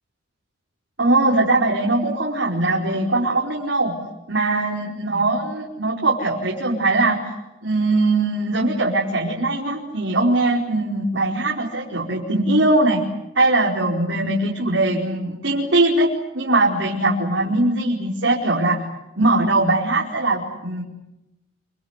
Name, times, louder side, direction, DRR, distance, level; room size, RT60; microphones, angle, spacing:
voice 1, 1.0-4.0 4.3-7.3 7.6-13.1 13.3-16.1 16.3-18.8 19.2-20.8, right 2 dB, 75° right, -2 dB, 4.8 m, -20 dB
28.0 x 25.5 x 8.3 m, 0.96 s
head